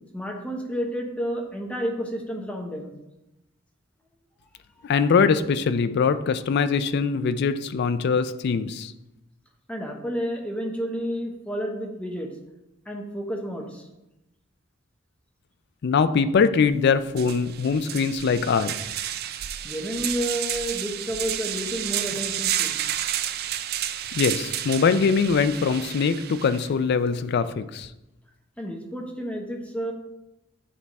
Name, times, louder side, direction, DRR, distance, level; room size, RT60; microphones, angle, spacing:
voice 1, 0.1-2.9 9.7-12.3 12.9-13.9 19.6-22.8 28.6-29.9, equal, 5° left, 1 dB, 0.8 m, -30 dB
voice 2, 4.8-8.9 15.8-18.7 24.1-27.9, left 5 dB, 55° left, 13 dB, 0.4 m, -22 dB
sound 1, 16.7-16.8 17.1-26.7, right 11 dB, 50° right, 0.3 m, -31 dB
8.5 x 3.5 x 4.1 m, 0.92 s
head